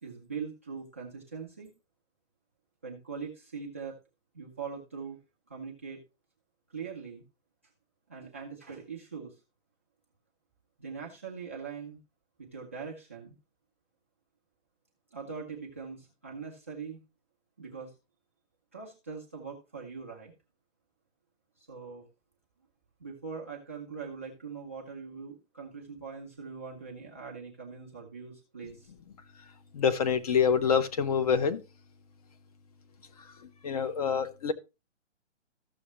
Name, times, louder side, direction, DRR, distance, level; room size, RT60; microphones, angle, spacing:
voice 1, 0.0-1.7 2.8-4.0 4.3-5.2 5.5-6.0 6.7-7.2 8.1-9.3 10.8-12.0 12.4-13.3 15.1-17.0 17.6-17.9 18.7-20.3 21.6-22.1 23.0-28.9, right 5 dB, 10° right, 0.4 m, -42 dB
voice 2, 29.7-31.6 33.4-34.5, left 7 dB, 30° left, 0.6 m, -26 dB
14.0 x 6.3 x 3.0 m
hypercardioid pair, 150°, 36 cm